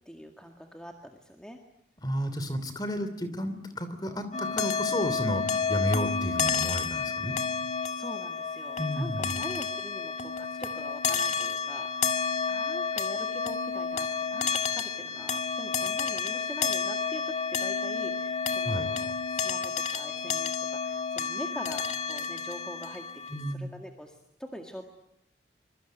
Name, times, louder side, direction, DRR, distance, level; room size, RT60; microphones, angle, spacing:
voice 1, 0.1-1.6 7.9-23.0 23.5-24.8, equal, 5° left, 2 dB, 2.0 m, -44 dB
voice 2, 2.0-7.4 8.8-9.4 18.6-18.9 23.3-23.7, equal, 20° left, 10 dB, 3.0 m, -32 dB
sound 1, 4.3-23.5, left 5 dB, 40° left, 2.0 m, -30 dB
25.5 x 23.5 x 9.1 m, 0.76 s
head